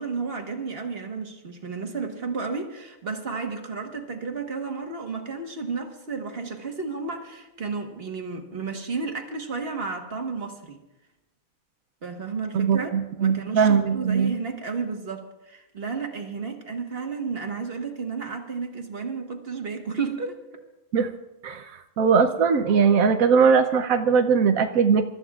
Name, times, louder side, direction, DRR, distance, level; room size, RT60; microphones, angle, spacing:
voice 1, 0.0-10.8 12.0-20.6, right 4 dB, 45° right, 3 dB, 1.6 m, -32 dB
voice 2, 12.5-14.3 20.9-21.1 21.4-21.6 22.0-25.0, right 6 dB, 75° right, 7 dB, 1.1 m, -20 dB
28.0 x 13.5 x 2.4 m, 1.0 s
omnidirectional pair, 1.5 m